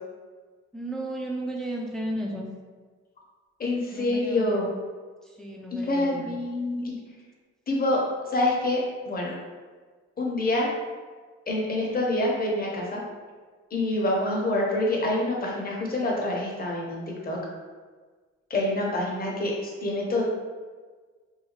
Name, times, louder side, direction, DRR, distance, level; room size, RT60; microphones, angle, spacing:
voice 1, 0.7-2.5 3.9-4.7 5.2-6.3, right 1 dB, ahead, -1 dB, 0.3 m, -34 dB
voice 2, 3.6-4.7 5.7-6.9 7.7-8.0 8.2-9.3 10.2-10.7 11.5-13.0 13.7-17.4 18.5-20.2, left 1 dB, 30° left, -2 dB, 0.7 m, -26 dB
2.7 x 2.2 x 2.9 m, 1.5 s
cardioid pair, 90°, 30 cm